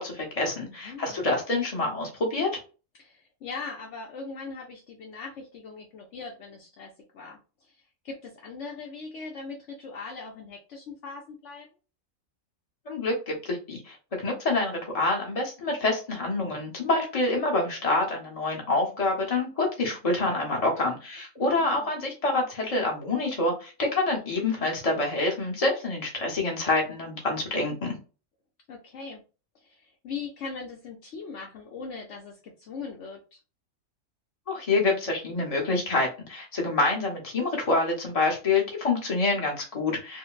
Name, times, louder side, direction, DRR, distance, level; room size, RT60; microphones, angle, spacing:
voice 1, 0.0-2.5 12.9-27.9 34.5-40.2, left 2 dB, 30° left, 0 dB, 1.0 m, -27 dB
voice 2, 0.6-1.2 3.0-7.8 8.0-11.7 21.4-21.9 28.7-29.2 29.6-33.4, left 4 dB, 65° left, 1 dB, 0.9 m, -40 dB
3.7 x 2.0 x 2.4 m, 0.33 s
omnidirectional pair, 1.4 m